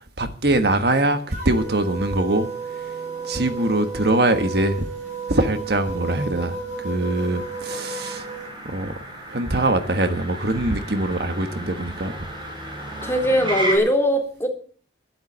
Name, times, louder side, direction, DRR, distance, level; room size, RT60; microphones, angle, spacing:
voice 1, 0.2-2.5 3.2-4.9 5.3-8.2 8.7-8.9 9.3-12.1, right 2 dB, 65° right, 1.5 m, -22 dB
Motor vehicle (road), 0.7-13.8, right 1 dB, 30° right, 6.3 m, -36 dB
sound 1, 1.3-8.5, right 4 dB, 45° right, 4.9 m, -33 dB
voice 2, 13.0-14.5, equal, 15° left, 3.6 m, -20 dB
12.5 x 11.5 x 7.4 m
head